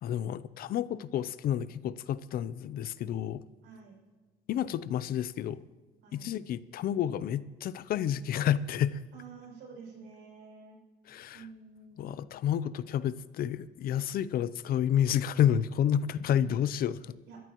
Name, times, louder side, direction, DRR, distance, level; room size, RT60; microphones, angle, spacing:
voice 1, 0.0-3.4 4.5-5.6 6.1-9.0 11.1-11.5 12.0-17.2, left 10 dB, 60° left, 16 dB, 0.6 m, -30 dB
voice 2, 3.6-4.0 6.0-6.4 9.1-10.8 11.3-12.1 16.2-16.6 17.3-17.4, right 5 dB, 85° right, 0 dB, 6.4 m, -49 dB
25.5 x 14.0 x 3.1 m, 1.3 s
cardioid pair, 110°, 17 cm